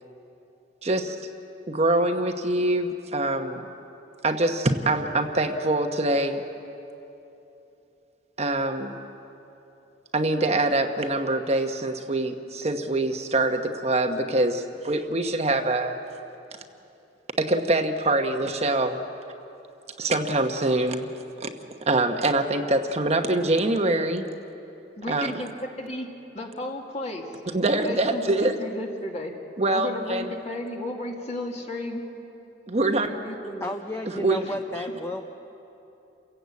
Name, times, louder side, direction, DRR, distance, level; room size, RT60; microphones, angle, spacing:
voice 1, 0.8-1.2 1.7-3.6 4.2-6.4 8.4-9.0 10.1-16.0 17.4-19.0 20.0-21.1 21.4-21.5 21.8-24.2 25.1-25.4 27.5-28.6 29.6-30.3 32.7-33.2 34.2-34.5, right 2 dB, 35° right, 5 dB, 1.1 m, -24 dB
voice 2, 25.0-25.5 25.8-26.1 26.3-27.3 27.7-29.3 29.7-32.0 33.1-33.7 34.4-34.5, left 1 dB, 40° left, 1 dB, 2.5 m, -34 dB
voice 3, 33.6-35.3, left 1 dB, 15° left, 4 dB, 0.8 m, -32 dB
29.0 x 16.0 x 8.3 m, 2.9 s
head